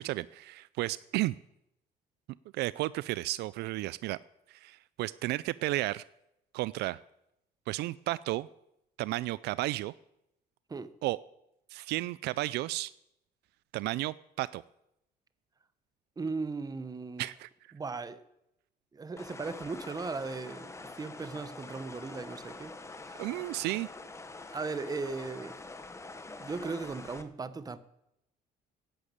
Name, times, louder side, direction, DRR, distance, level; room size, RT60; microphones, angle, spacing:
voice 1, 0.0-1.4 2.5-4.2 4.5-6.0 6.5-7.0 7.7-8.5 9.0-9.9 11.0-11.2 11.7-12.9 13.7-14.6 17.2-17.5 23.2-23.9, right 18 dB, 80° right, 0.4 m, -33 dB
voice 2, 16.2-17.3 17.7-18.2 18.9-23.2 24.5-25.6 26.4-27.8, right 4 dB, 20° right, 1.0 m, -37 dB
sound 1, 19.2-27.2, left 3 dB, 15° left, 1.1 m, -46 dB
10.5 x 10.0 x 8.8 m
cardioid pair, 110°, 17 cm